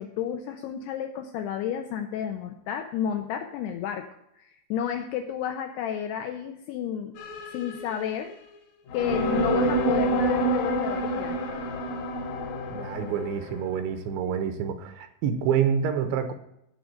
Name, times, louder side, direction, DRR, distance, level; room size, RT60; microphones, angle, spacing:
voice 1, 0.0-4.1 4.4-7.1 7.5-8.3 8.9-11.4, left 9 dB, 80° left, 5 dB, 2.4 m, -32 dB
sound 1, 7.2-8.3 8.9-13.6, equal, 65° left, 2.4 m, -27 dB
voice 2, 12.7-16.3, right 8 dB, 75° right, 9 dB, 3.1 m, -27 dB
15.0 x 5.1 x 6.6 m, 0.80 s
omnidirectional pair, 5.5 m